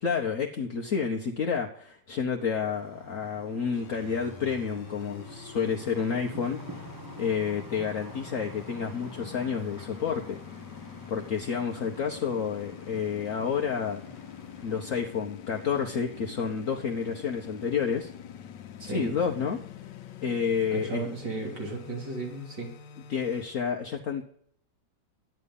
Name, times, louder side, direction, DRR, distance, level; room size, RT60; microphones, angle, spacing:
voice 1, 0.0-6.9 7.2-10.4 11.1-14.0 14.6-18.1 18.8-19.6 20.2-21.0 23.1-24.2, left 6 dB, 55° left, 2 dB, 1.3 m, -30 dB
sound 1, 2.5-15.1, right 2 dB, 15° right, 0.7 m, -48 dB
sound 2, 3.7-23.5, left 9 dB, 80° left, 1.5 m, -45 dB
voice 2, 18.8-19.1 20.7-22.7, right 3 dB, 75° right, -2 dB, 3.8 m, -35 dB
12.5 x 9.9 x 5.4 m, 0.65 s
omnidirectional pair, 1.9 m